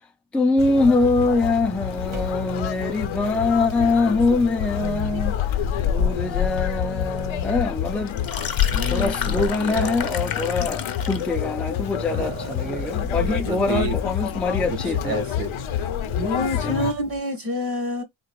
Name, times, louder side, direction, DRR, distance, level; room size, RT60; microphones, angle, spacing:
voice 1, 0.3-8.2 8.9-15.2 16.6-16.9, left 3 dB, ahead, 0.4 m, -24 dB
Conversation, 0.6-16.9, left 9 dB, 85° left, 0.6 m, -27 dB
sound 1, 1.1-17.2, right 1 dB, 90° right, 1.4 m, -43 dB
voice 2, 4.8-5.3 6.1-7.5 8.7-9.9 12.1-14.0 14.8-15.8 16.2-18.0, right 1 dB, 50° right, 1.3 m, -30 dB
sound 2, 8.1-11.3, left 7 dB, 50° left, 0.8 m, -32 dB
3.8 x 2.5 x 3.0 m
wide cardioid pair, 125°, 47 cm